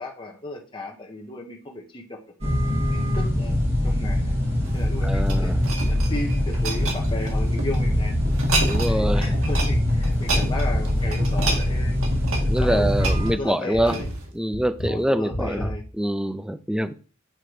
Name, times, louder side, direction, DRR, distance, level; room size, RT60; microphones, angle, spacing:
voice 1, 0.0-2.2 2.9-3.6 3.8-4.3 4.7-8.1 8.7-12.0 12.4-12.9 13.4-14.1 14.8-15.8, left 2 dB, 20° left, 1.0 m, -35 dB
sound 1, 2.4-13.3, left 1 dB, 30° right, 2.4 m, -23 dB
sound 2, 4.6-5.0 5.3-5.7 6.1-6.4 6.8-7.2 7.5-8.0 8.3-8.7 9.1-9.5 9.9-10.3 10.6-11.0 11.4-11.9 12.2-12.6 13.0-13.3 13.7-14.2 14.5-14.9 15.3-15.8, equal, 40° left, 1.5 m, -33 dB
sound 3, 4.6-7.8 8.3-9.0 9.2-9.7 10.0-14.3 14.9-15.0, right 3 dB, 70° right, 1.9 m, -30 dB
voice 2, 5.0-5.6 8.7-9.3 12.5-13.9 14.4-15.7 16.0-16.9, equal, 5° right, 0.4 m, -25 dB
7.7 x 3.9 x 4.9 m
head